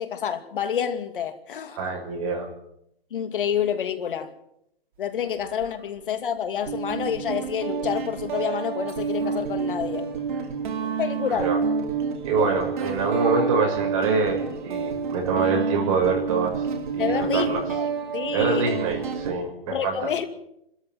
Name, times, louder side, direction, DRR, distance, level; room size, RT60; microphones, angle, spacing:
voice 1, 0.0-1.9 3.1-4.3 5.0-10.1 11.0-11.5 17.0-17.9 18.1-18.8 19.7-20.2, left 8 dB, 60° left, 2.7 m, -28 dB
voice 2, 1.7-2.5 11.3-11.6 12.2-16.6 16.9-17.6 18.3-20.1, right 4 dB, 30° right, 6.5 m, -25 dB
Guitar, 5.4-5.7 6.7-19.3, right 5 dB, 55° right, 2.8 m, -28 dB
27.0 x 13.5 x 7.8 m
hypercardioid pair, 160°, 30 cm